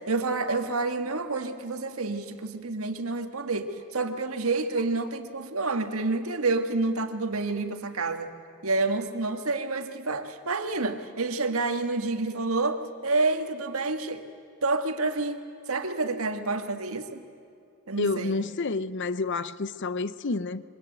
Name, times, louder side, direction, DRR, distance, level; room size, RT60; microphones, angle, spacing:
voice 1, 0.1-8.3 8.6-14.2 14.6-17.2 17.9-18.4, right 3 dB, 75° right, 1.7 m, -28 dB
voice 2, 18.0-20.6, left 3 dB, 55° left, 0.7 m, -29 dB
26.0 x 23.5 x 8.0 m
head